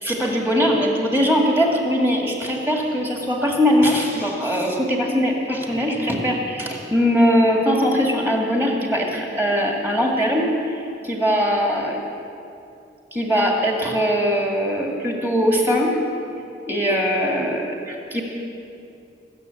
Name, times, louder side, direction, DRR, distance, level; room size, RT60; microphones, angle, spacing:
voice 1, 0.0-12.0 13.1-16.0 16.7-18.2, equal, 10° right, 0 dB, 2.0 m, -21 dB
20.5 x 7.3 x 8.3 m, 2.7 s
head